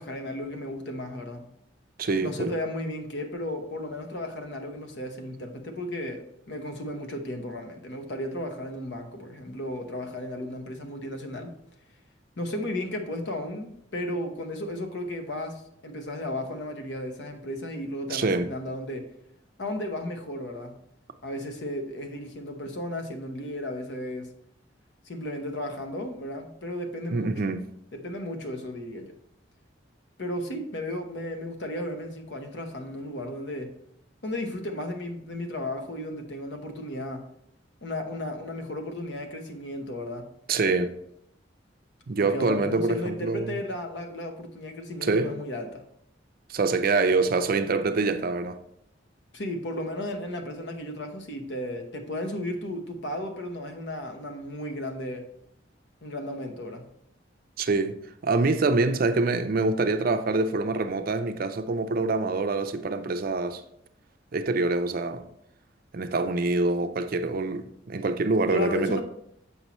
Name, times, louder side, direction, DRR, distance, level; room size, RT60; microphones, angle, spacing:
voice 1, 0.0-1.5 2.2-11.6 12.4-19.1 19.6-20.8 21.2-24.3 25.0-27.4 27.9-29.1 30.2-33.8 34.2-37.3 37.8-40.3 42.2-45.8 49.3-55.3 56.0-56.9 68.5-69.0, left 1 dB, 65° left, 0.9 m, -34 dB
voice 2, 2.0-2.5 18.1-18.5 27.1-27.6 40.5-40.9 42.1-43.5 45.0-45.3 46.5-48.6 57.6-63.6 64.3-65.2 65.9-69.0, right 3 dB, 50° right, 0.5 m, -25 dB
7.2 x 5.4 x 3.0 m
head